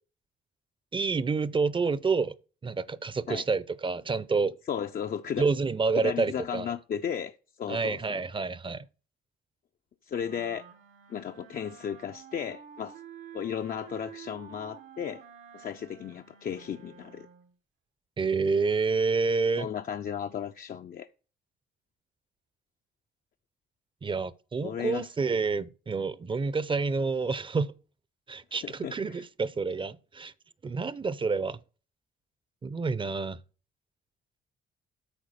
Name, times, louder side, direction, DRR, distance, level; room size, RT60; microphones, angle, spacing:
voice 1, 0.9-2.3 2.6-4.5 5.4-6.7 7.7-8.9 18.2-19.7 24.0-27.7 28.3-30.3 30.6-31.6 32.6-33.4, right 4 dB, 25° right, 0.5 m, -28 dB
voice 2, 4.7-5.5 6.0-8.2 10.1-10.6 11.1-13.0 13.3-15.2 15.5-17.3 19.6-21.1 24.6-25.1 28.6-29.2, left 8 dB, 45° left, 0.5 m, -35 dB
sound 1, 10.2-17.6, right 8 dB, 85° right, 1.2 m, -50 dB
8.8 x 4.4 x 6.6 m
cardioid pair, 90°, 20 cm